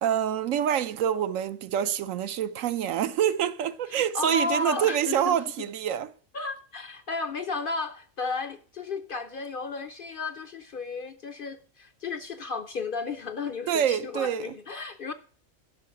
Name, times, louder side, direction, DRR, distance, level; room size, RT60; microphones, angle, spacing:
voice 1, 0.0-6.1 13.7-14.4, right 9 dB, 75° right, 1.0 m, -26 dB
voice 2, 3.9-5.7 6.3-15.1, left 4 dB, 55° left, 0.6 m, -33 dB
11.5 x 5.6 x 7.2 m
omnidirectional pair, 1.4 m